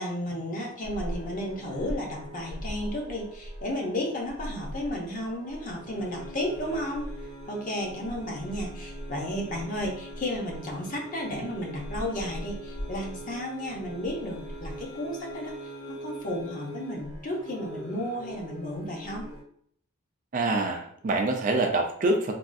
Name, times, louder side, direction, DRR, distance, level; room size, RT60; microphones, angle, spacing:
voice 1, 0.0-7.1 7.5-15.6 15.9-19.3, left 1 dB, 40° left, 0 dB, 0.7 m, -33 dB
sound 1, 0.8-19.4, equal, 70° left, 0.9 m, -40 dB
voice 2, 20.3-22.3, right 2 dB, 40° right, 3 dB, 0.3 m, -25 dB
3.4 x 2.3 x 2.5 m, 0.62 s
head